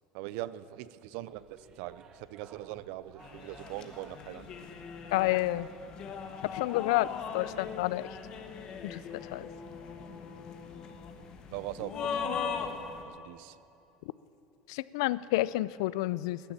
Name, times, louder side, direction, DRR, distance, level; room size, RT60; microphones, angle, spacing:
voice 1, 0.1-4.5 11.5-12.6 13.0-13.6, right 15 dB, 55° right, 16 dB, 0.5 m, -41 dB
sound 1, 1.3-6.4, right 5 dB, 25° right, 0.8 m, -57 dB
sound 2, 3.2-13.0, left 6 dB, 30° left, 1.0 m, -40 dB
voice 2, 5.1-5.7 6.5-7.1 7.3-8.1 8.8-9.5 14.7-16.4, left 18 dB, 80° left, 18 dB, 0.4 m, -29 dB
17.0 x 10.5 x 7.4 m, 2.8 s
cardioid pair, 180°, 3 cm